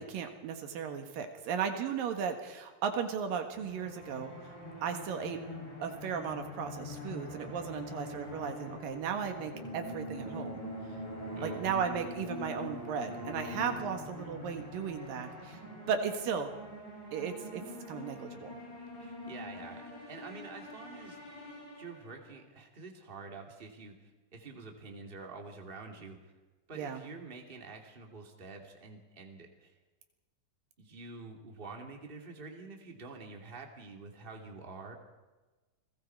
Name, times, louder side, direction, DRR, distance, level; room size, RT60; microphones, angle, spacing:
voice 1, 0.0-4.3 4.8-5.4 5.8-10.6 11.4-15.6 15.9-16.5 17.1-18.6 26.8-27.0, right 7 dB, 80° right, 6 dB, 3.3 m, -36 dB
sound 1, 3.5-22.3, left 1 dB, 50° left, 8.6 m, -44 dB
voice 2, 19.0-19.8 20.1-21.2 21.7-26.3 26.7-29.8 30.8-34.9, right 3 dB, 15° right, 2 dB, 2.3 m, -47 dB
30.0 x 20.5 x 4.7 m, 1.2 s
omnidirectional pair, 4.0 m